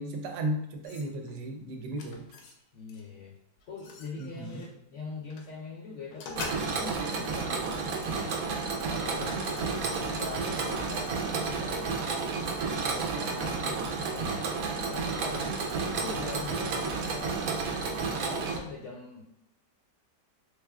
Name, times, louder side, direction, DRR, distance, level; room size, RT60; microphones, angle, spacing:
voice 1, 0.0-2.2 4.2-4.6, right 1 dB, 85° right, 4 dB, 1.2 m, -35 dB
sound 1, 0.8-1.4 1.9-2.6 2.9-3.1 3.6-4.7 5.3-5.5 6.1-7.0 7.6-8.8 9.4-11.5, left 4 dB, 85° left, 1.3 m, -46 dB
voice 2, 2.7-3.4 3.7-8.4 8.8-9.7 10.0-12.0 12.8-14.5 14.7-17.4 18.1-19.2, left 4 dB, 70° left, -3 dB, 0.7 m, -43 dB
Mechanisms, 6.4-18.6, right 4 dB, 70° right, 0.9 m, -31 dB
sound 2, 9.2-10.1 10.7-11.0 11.7-12.8 13.4-13.5 13.8-15.2, equal, 35° right, 1.1 m, -48 dB
3.5 x 3.4 x 2.3 m, 0.78 s
omnidirectional pair, 1.8 m